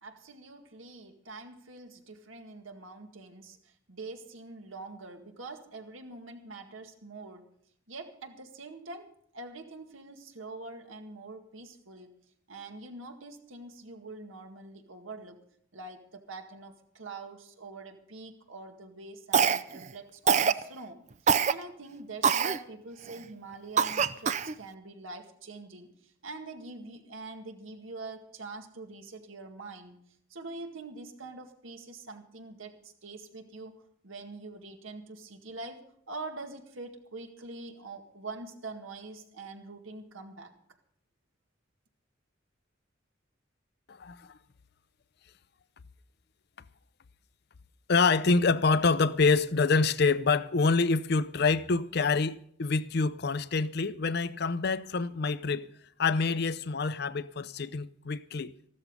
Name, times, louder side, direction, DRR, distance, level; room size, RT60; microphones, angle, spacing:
voice 1, 0.0-7.4 7.9-12.1 12.5-15.4 15.7-30.0 30.3-33.8 34.0-40.5, right 3 dB, 90° right, 1.9 m, -44 dB
Cough, 19.3-19.9 20.3-20.6 21.3-21.5 22.2-22.6 23.1-23.2 23.8-24.5, right 6 dB, 35° right, 0.5 m, -24 dB
voice 2, 43.9-44.3 47.9-55.7 56.0-58.5, left 4 dB, 55° left, 0.5 m, -26 dB
14.5 x 13.0 x 5.4 m
head